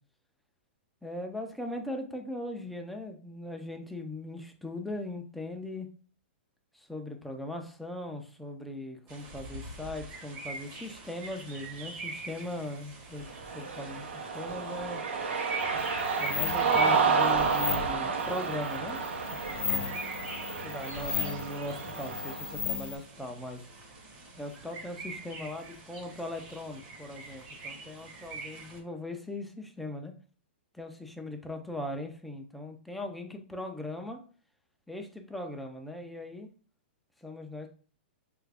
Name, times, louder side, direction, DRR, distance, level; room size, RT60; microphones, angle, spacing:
voice 1, 1.0-5.9 6.7-15.0 16.2-19.0 19.5-20.0 20.6-23.6 24.4-30.1 30.7-34.2 34.9-36.5 37.2-37.7, left 1 dB, ahead, 3 dB, 0.3 m, -39 dB
sound 1, 9.1-28.8, right 2 dB, 35° right, 0.9 m, -43 dB
Cheering, 13.3-22.5, right 5 dB, 90° right, 0.7 m, -30 dB
sound 2, 15.6-23.0, left 7 dB, 80° left, 0.5 m, -37 dB
3.2 x 2.4 x 3.3 m, 0.41 s
hypercardioid pair, 155°, 6 cm